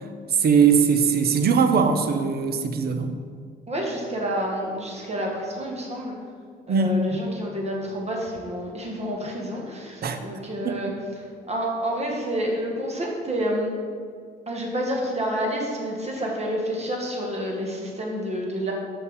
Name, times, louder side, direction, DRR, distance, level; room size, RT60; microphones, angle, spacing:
voice 1, 0.3-3.1 6.7-7.2 10.0-10.2 10.6-10.8, right 6 dB, 50° right, 8 dB, 0.7 m, -20 dB
voice 2, 3.7-6.1 6.7-10.9 11.5-13.7 14.5-18.7, equal, 35° right, -1 dB, 1.6 m, -29 dB
5.7 x 5.4 x 4.8 m, 2.1 s
cardioid pair, 90°, 20 cm